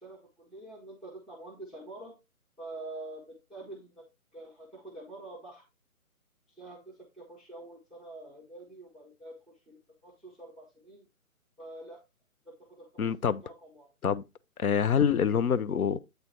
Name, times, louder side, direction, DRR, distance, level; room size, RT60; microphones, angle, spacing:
voice 1, 0.0-2.1 2.6-4.0 4.3-5.6 6.6-9.3 9.7-11.1 11.6-12.0 12.4-13.9, right 2 dB, ahead, 0.6 m, -46 dB
voice 2, 13.0-13.4 14.0-14.2 14.6-16.0, left 7 dB, 80° left, 0.7 m, -26 dB
8.0 x 3.3 x 4.3 m
hypercardioid pair, 180°, 43 cm